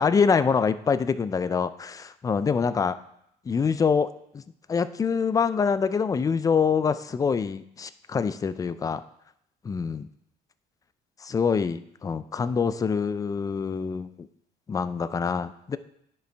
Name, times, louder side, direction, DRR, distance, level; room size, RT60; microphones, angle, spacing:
voice 1, 0.0-3.0 3.5-4.1 4.3-4.4 4.7-9.0 9.6-10.1 11.2-14.1 14.7-15.8, left 5 dB, 20° left, 14 dB, 0.3 m, -25 dB
10.5 x 5.3 x 3.3 m, 0.75 s
cardioid pair, 110°, 17 cm